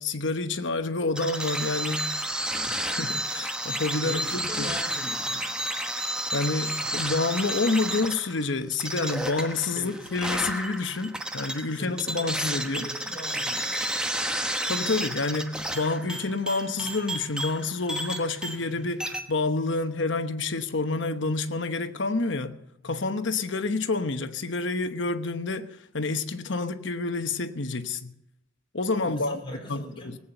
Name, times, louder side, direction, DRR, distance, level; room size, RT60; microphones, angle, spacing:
voice 1, 0.0-2.1 2.7-4.7 6.3-12.9 14.7-22.6 22.8-28.1 28.7-29.4 29.7-30.2, left 3 dB, 65° left, 1.0 m, -28 dB
sound 1, 1.2-18.7 19.0-19.2, right 1 dB, 5° right, 1.0 m, -31 dB
voice 2, 2.5-2.8 4.0-5.5 9.7-10.2 11.7-13.8 29.0-30.1, left 1 dB, 25° left, 4.0 m, -40 dB
19.0 x 8.8 x 7.8 m
head